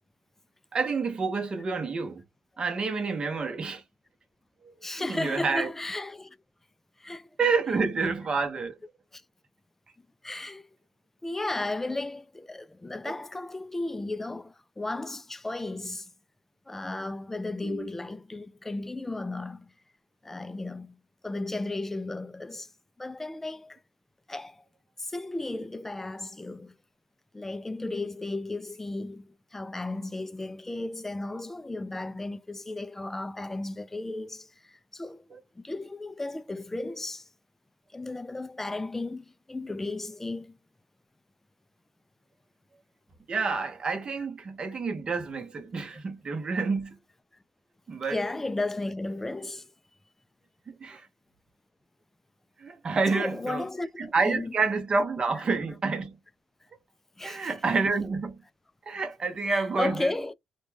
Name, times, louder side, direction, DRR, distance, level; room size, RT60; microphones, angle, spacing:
voice 1, 0.7-2.2 2.6-3.8 4.6-5.7 7.4-8.8 17.6-17.9 43.3-47.0 47.9-48.2 50.7-51.1 52.6-53.6 54.0-56.2 57.2-58.4 58.9-60.1, right 4 dB, 40° right, 0.8 m, -28 dB
voice 2, 4.8-6.4 7.0-7.3 9.1-9.2 10.2-10.7 11.2-16.1 16.7-19.7 20.2-22.7 23.0-23.8 24.3-24.6 25.0-26.8 27.3-37.3 37.9-40.6 48.1-49.7 53.1-54.5 57.2-57.5 59.5-60.3, left 2 dB, 15° left, 0.4 m, -34 dB
2.5 x 2.2 x 3.2 m
cardioid pair, 75°, 2 cm